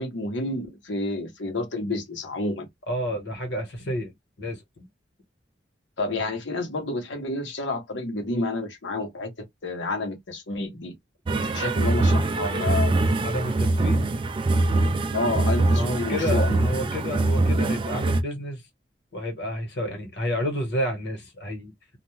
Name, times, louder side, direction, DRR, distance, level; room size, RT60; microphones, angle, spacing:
voice 1, 0.0-2.7 6.0-10.9 11.4-13.0 15.1-16.6, left 2 dB, 85° left, 0.9 m, -29 dB
voice 2, 2.9-4.1 4.4-4.9 13.2-14.1 15.7-18.6 19.1-21.7, equal, 65° left, 1.2 m, -30 dB
sound 1, 11.3-18.2, right 2 dB, 30° right, 0.3 m, -23 dB
2.4 x 2.2 x 3.1 m
head